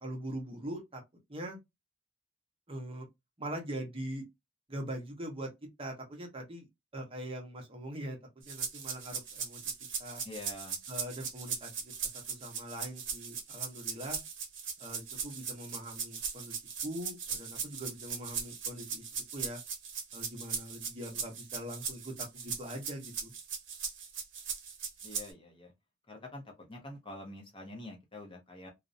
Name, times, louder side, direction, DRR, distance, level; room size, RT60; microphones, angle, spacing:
voice 1, 0.0-1.0 1.3-1.6 2.7-3.1 3.4-4.2 4.7-5.5 5.8-6.7 6.9-8.2 8.4-9.6 10.0-10.2 10.9-11.9 12.3-14.2 14.8-16.5 16.8-19.0 19.3-19.6 20.1-23.3, right 1 dB, 25° right, 0.7 m, -42 dB
sound 1, 8.5-25.3, right 6 dB, 60° right, 0.8 m, -39 dB
voice 2, 10.2-10.8 25.0-25.7 26.1-28.7, left 1 dB, 25° left, 0.5 m, -46 dB
2.5 x 2.0 x 2.5 m
head